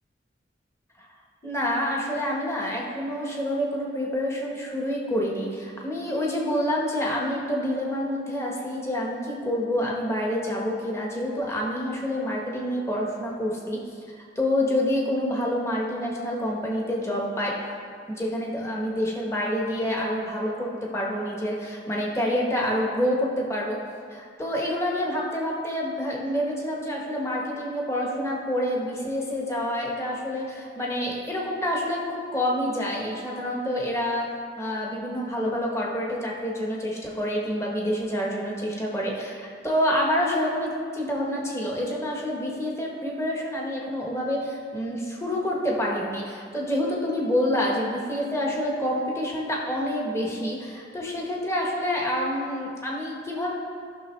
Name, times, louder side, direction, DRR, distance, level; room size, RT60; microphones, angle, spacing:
voice 1, 1.4-13.8 14.4-17.5 18.1-23.8 24.1-34.3 34.6-53.5, equal, 15° left, -3 dB, 1.2 m, -27 dB
14.5 x 6.0 x 3.2 m, 2.2 s
head